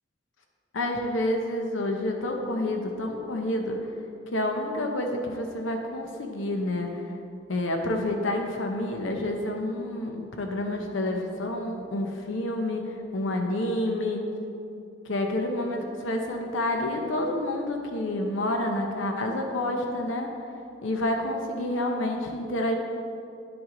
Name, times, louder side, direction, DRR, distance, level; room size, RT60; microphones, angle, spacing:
voice 1, 0.7-3.8 4.3-7.0 7.5-14.2 15.1-20.3 20.8-22.8, left 1 dB, 75° left, 3 dB, 0.7 m, -29 dB
9.9 x 5.9 x 3.8 m, 2.7 s
head